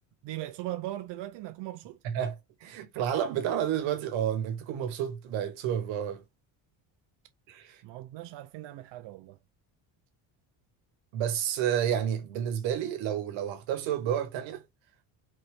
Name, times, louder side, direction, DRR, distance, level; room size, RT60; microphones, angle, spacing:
voice 1, 0.2-2.0 7.8-9.4, right 15 dB, 65° right, 0.6 m, -39 dB
voice 2, 2.0-6.2 7.5-7.8 11.1-14.6, right 9 dB, 85° right, 1.3 m, -30 dB
4.2 x 3.1 x 3.1 m
cardioid pair, 110°, 45 cm